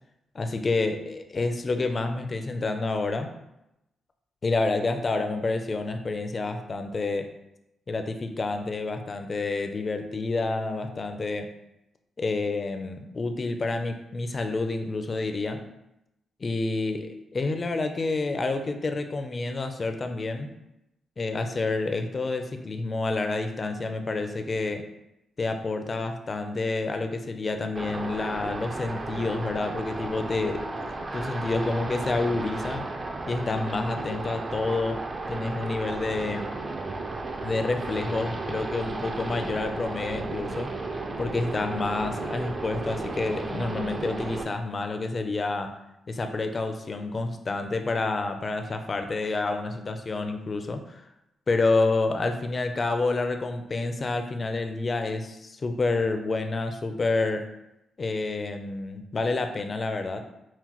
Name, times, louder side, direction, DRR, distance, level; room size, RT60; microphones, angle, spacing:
voice 1, 0.3-3.3 4.4-7.3 7.9-11.5 12.2-15.6 16.4-20.5 21.2-24.9 25.4-32.9 33.2-35.0 35.3-36.5 37.4-40.7 41.2-45.7 46.1-51.0 51.5-57.5 58.0-60.2, left 3 dB, 35° left, 6 dB, 0.4 m, -29 dB
sound 1, 27.8-44.4, right 2 dB, 30° right, 0.4 m, -34 dB
5.7 x 2.2 x 2.9 m, 0.88 s
cardioid pair, 110°, 0 cm